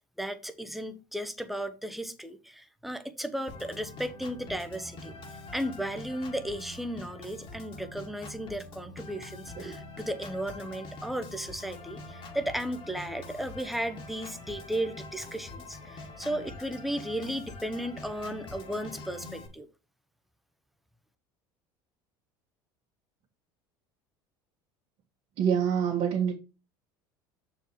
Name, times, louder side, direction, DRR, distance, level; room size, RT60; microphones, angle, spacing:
voice 1, 0.2-5.1 5.5-19.7, right 1 dB, ahead, 1.0 m, -35 dB
Organ, 3.5-19.5, left 2 dB, 45° left, 2.2 m, -45 dB
voice 2, 25.4-26.3, right 8 dB, 55° right, 1.8 m, -25 dB
6.6 x 4.7 x 4.6 m
supercardioid pair, 90°, 12 cm